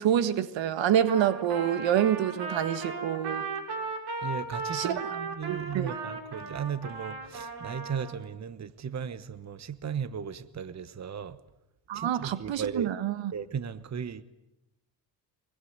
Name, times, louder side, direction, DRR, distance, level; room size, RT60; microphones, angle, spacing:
voice 1, 0.0-3.5 4.7-5.2 5.5-6.0 11.9-13.3, right 10 dB, 75° right, 1.7 m, -27 dB
Trumpet, 1.1-8.2, right 4 dB, 60° right, 6.0 m, -36 dB
voice 2, 4.2-11.4 11.9-12.9 13.3-14.2, right 7 dB, 35° right, 1.2 m, -36 dB
24.5 x 23.0 x 9.6 m
cardioid pair, 105°, 45 cm